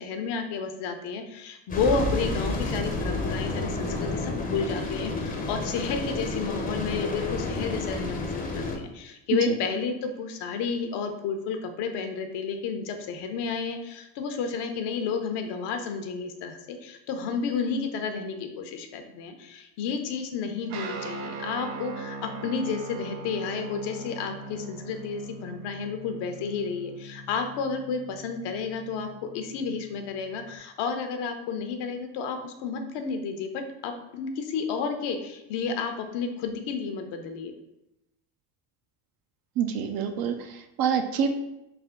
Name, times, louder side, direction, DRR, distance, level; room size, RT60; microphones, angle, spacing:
voice 1, 0.0-29.1 29.3-37.5, left 5 dB, 60° left, 6 dB, 0.7 m, -31 dB
sound 1, 1.7-8.8, left 2 dB, 20° left, 0.6 m, -30 dB
Guitar, 20.7-30.5, right 2 dB, 80° right, 0.7 m, -41 dB
voice 2, 39.6-41.3, right 7 dB, 50° right, 6 dB, 0.5 m, -27 dB
3.4 x 2.2 x 3.6 m, 0.90 s
supercardioid pair, 100°, 46 cm